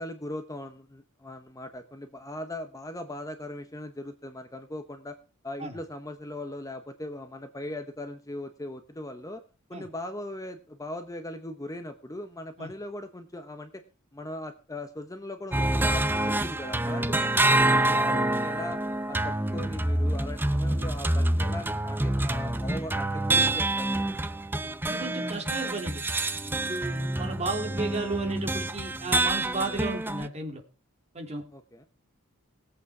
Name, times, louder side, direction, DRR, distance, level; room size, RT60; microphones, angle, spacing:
voice 1, 0.0-5.2 5.4-9.4 9.7-13.8 14.1-18.8 19.1-24.2 31.5-31.9, left 1 dB, 15° left, 8 dB, 0.9 m, -39 dB
sound 1, 15.5-30.3, right 1 dB, 10° right, 0.6 m, -27 dB
voice 2, 24.8-26.1 26.5-30.6 31.1-31.4, right 3 dB, 30° right, 3 dB, 2.9 m, -34 dB
18.0 x 8.4 x 4.8 m, 0.35 s
head